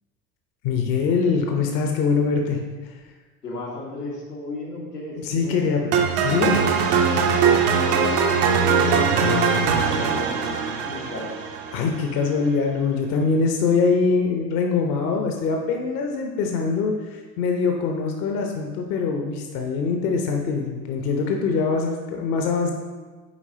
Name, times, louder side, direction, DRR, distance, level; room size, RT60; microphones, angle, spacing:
voice 1, 0.6-2.9 5.2-5.9 6.2-6.6 11.7-22.7, left 4 dB, 50° left, 3 dB, 0.9 m, -23 dB
voice 2, 3.4-5.7 6.5-11.3, left 2 dB, 90° left, -6 dB, 1.5 m, -35 dB
sound 1, 5.9-12.0, right 5 dB, 55° right, 0.9 m, -21 dB
8.3 x 4.8 x 2.8 m, 1.3 s
figure-of-eight pair, 70°, 46 cm